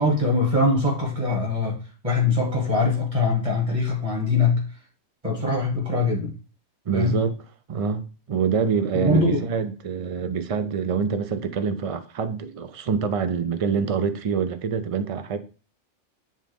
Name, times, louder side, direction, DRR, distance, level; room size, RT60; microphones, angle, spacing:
voice 1, 0.0-1.8 2.0-4.6 5.2-6.3 6.9-7.2 8.9-9.4, left 3 dB, 25° right, 2.1 m, -22 dB
voice 2, 6.9-7.4 7.7-15.4, right 6 dB, 45° right, 0.4 m, -25 dB
7.5 x 3.7 x 3.5 m
omnidirectional pair, 1.2 m